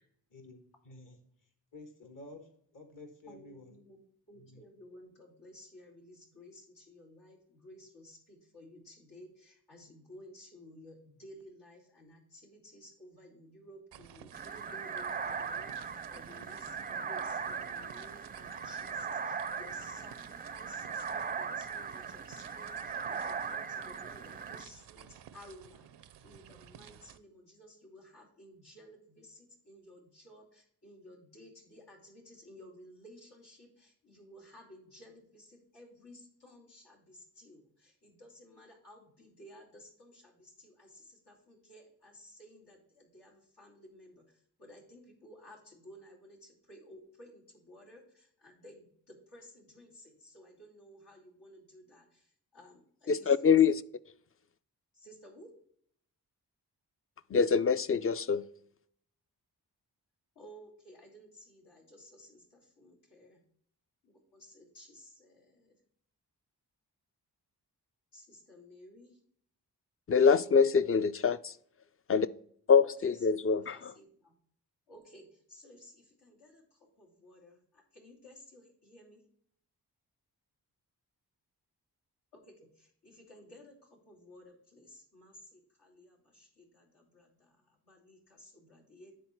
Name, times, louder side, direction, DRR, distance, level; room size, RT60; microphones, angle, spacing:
voice 1, 0.3-1.2 1.7-3.8 4.3-4.6, left 2 dB, 50° left, 1.5 m, -51 dB
voice 2, 3.3-4.0 4.3-53.3 54.9-55.5 60.3-63.4 64.0-65.8 68.1-69.2 72.8-72.9 73.7-74.3 74.9-79.2 82.3-89.1, left 1 dB, 80° left, 2.9 m, -55 dB
sound 1, 13.9-27.2, right 9 dB, 85° right, 0.5 m, -54 dB
sound 2, 14.3-24.7, right 6 dB, 25° right, 0.4 m, -39 dB
voice 3, 53.1-53.8 57.3-58.5 70.1-71.6 72.1-72.3 72.7-73.9, left 6 dB, 35° left, 0.5 m, -25 dB
9.7 x 3.9 x 4.4 m
cardioid pair, 45°, 40 cm